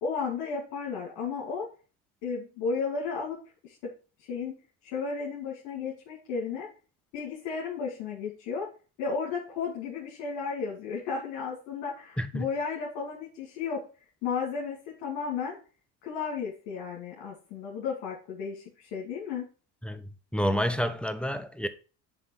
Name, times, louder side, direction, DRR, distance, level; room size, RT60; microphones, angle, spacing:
voice 1, 0.0-1.7 2.2-3.4 3.6-3.8 4.3-4.6 4.8-6.7 7.1-8.7 9.0-13.8 14.2-15.6 16.0-19.4, left 5 dB, 75° left, 2.5 m, -33 dB
voice 2, 19.8-21.7, equal, ahead, 0.9 m, -29 dB
9.8 x 3.6 x 4.6 m
supercardioid pair, 80°, 44 cm